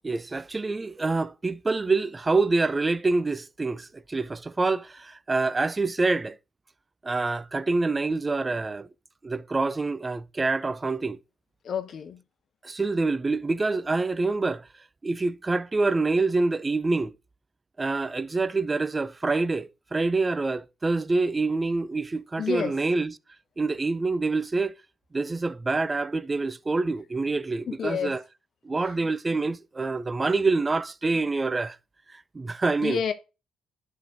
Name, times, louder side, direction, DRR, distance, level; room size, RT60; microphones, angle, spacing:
voice 1, 0.0-6.4 7.0-8.9 9.2-11.2 12.6-14.7 15.0-17.1 17.8-23.1 23.6-24.7 25.1-28.2 28.6-31.8 32.3-33.0, right 3 dB, 25° right, 0.4 m, -26 dB
voice 2, 11.6-12.2 22.4-22.7 27.7-28.2 28.8-28.9 32.8-33.1, left 7 dB, 60° left, 0.9 m, -29 dB
10.5 x 3.7 x 2.9 m
cardioid pair, 90°, 0 cm